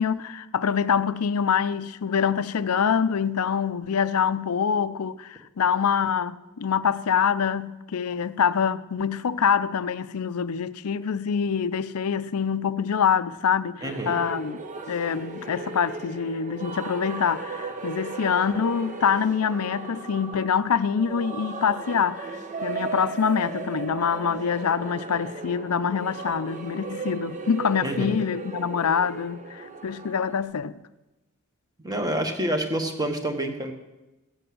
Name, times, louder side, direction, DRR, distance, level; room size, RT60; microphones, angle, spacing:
voice 1, 0.0-14.6 14.9-30.8, left 7 dB, 75° left, 0.5 m, -25 dB
voice 2, 13.8-14.2 27.8-28.2 31.8-33.7, right 1 dB, 15° right, 1.4 m, -28 dB
sound 1, 13.8-30.4, right 3 dB, 35° right, 1.0 m, -36 dB
15.0 x 7.8 x 7.7 m
head